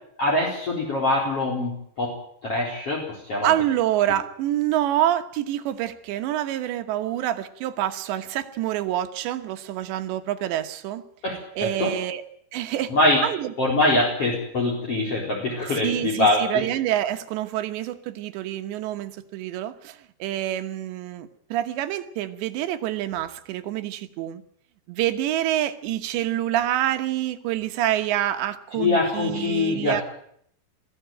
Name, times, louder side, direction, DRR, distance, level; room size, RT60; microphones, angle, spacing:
voice 1, 0.2-2.1 2.4-3.0 3.3-3.5 11.2-11.9 12.9-13.2 13.6-16.6 28.8-30.0, left 2 dB, 30° left, -2 dB, 4.8 m, -23 dB
voice 2, 3.4-11.0 11.6-12.2 12.5-12.9 13.2-13.5 15.7-24.4 24.9-30.0, right 12 dB, 70° right, 9 dB, 3.2 m, -27 dB
22.0 x 15.0 x 9.1 m, 0.67 s
omnidirectional pair, 5.6 m